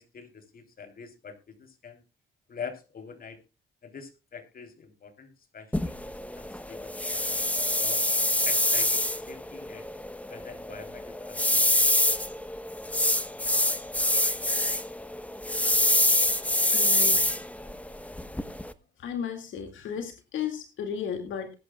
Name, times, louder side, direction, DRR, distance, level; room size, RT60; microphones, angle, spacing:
voice 1, 0.0-2.0 2.5-3.4 3.8-7.5 7.8-8.1 8.4-9.9 10.3-11.8, left 6 dB, 45° left, 6 dB, 3.4 m, -44 dB
sound 1, 5.7-18.7, left 1 dB, 5° left, 1.0 m, -26 dB
voice 2, 16.7-17.2 19.0-21.5, left 7 dB, 75° left, 5 dB, 2.3 m, -34 dB
20.5 x 10.5 x 2.3 m, 0.28 s
cardioid pair, 90°, 20 cm